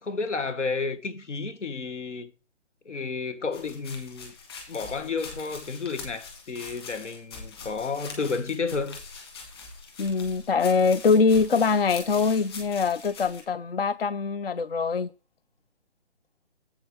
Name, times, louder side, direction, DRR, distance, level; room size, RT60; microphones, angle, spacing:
voice 1, 0.0-2.3 2.8-4.3 4.7-9.0, left 4 dB, 90° left, 1.5 m, -31 dB
sound 1, 3.5-13.4, left 4 dB, 20° left, 1.9 m, -43 dB
voice 2, 10.0-15.1, left 5 dB, 55° left, 0.4 m, -23 dB
8.1 x 6.5 x 4.4 m
hypercardioid pair, 180°, 35 cm